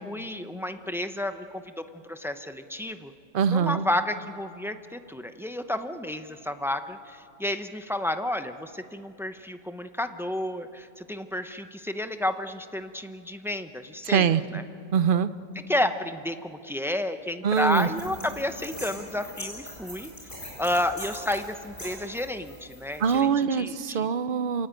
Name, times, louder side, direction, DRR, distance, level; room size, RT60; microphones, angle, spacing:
voice 1, 0.0-3.1 3.5-14.6 15.7-20.1 20.6-24.1, left 1 dB, 5° right, 9 dB, 0.4 m, -31 dB
voice 2, 3.3-3.8 14.1-14.4 14.9-15.3 17.4-17.9 23.0-24.7, right 7 dB, 50° right, 14 dB, 0.7 m, -23 dB
sound 1, 17.6-23.1, equal, 35° left, 7.2 m, -42 dB
27.5 x 17.0 x 9.0 m, 2.5 s
omnidirectional pair, 1.4 m